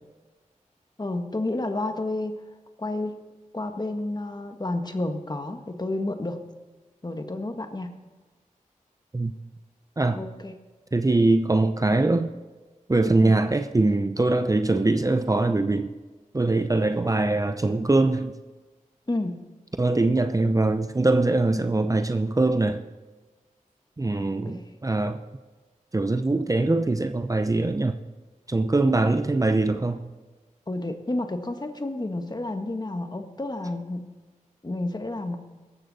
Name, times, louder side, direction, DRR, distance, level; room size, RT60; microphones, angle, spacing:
voice 1, 1.0-2.3 2.8-3.1 3.5-6.4 7.0-8.0 10.1-10.5 13.2-13.3 19.1-19.4 24.4-24.7 28.9-29.0 30.7-34.1 34.6-35.4, left 2 dB, 30° left, 6 dB, 1.5 m, -30 dB
voice 2, 10.0-10.3 10.9-12.3 12.9-15.9 16.3-18.4 19.8-22.8 24.0-25.2 25.9-28.0 28.5-30.1, right 2 dB, 25° right, 9 dB, 0.7 m, -22 dB
17.0 x 13.5 x 4.2 m, 1.3 s
wide cardioid pair, 55°, 14 cm